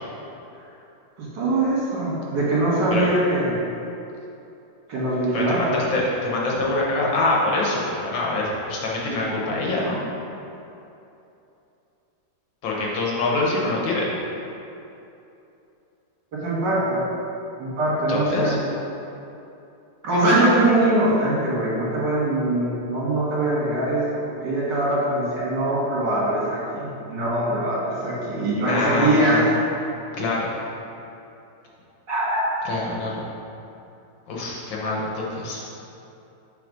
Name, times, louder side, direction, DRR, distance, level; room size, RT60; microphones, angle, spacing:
voice 1, 1.2-3.7 4.9-5.8 16.3-17.0 17.6-18.5 20.0-29.4 32.1-32.5, right 1 dB, 70° right, -6 dB, 2.2 m, -22 dB
voice 2, 5.3-10.0 12.6-14.1 18.1-18.6 28.7-29.5 30.2-30.5 32.7-33.2 34.3-35.6, left 2 dB, 85° left, -3 dB, 1.8 m, -25 dB
7.0 x 3.3 x 5.2 m, 2.8 s
omnidirectional pair, 2.0 m